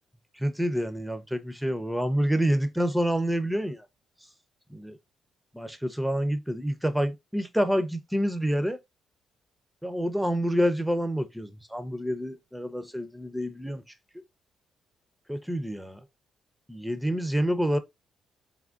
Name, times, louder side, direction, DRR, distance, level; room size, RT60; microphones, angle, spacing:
voice 1, 0.4-3.9 4.7-5.0 5.5-8.8 9.8-13.8 14.1-14.2 15.3-16.0 16.7-17.8, equal, 5° right, 0.5 m, -28 dB
3.5 x 2.1 x 2.4 m
cardioid pair, 90°, 0 cm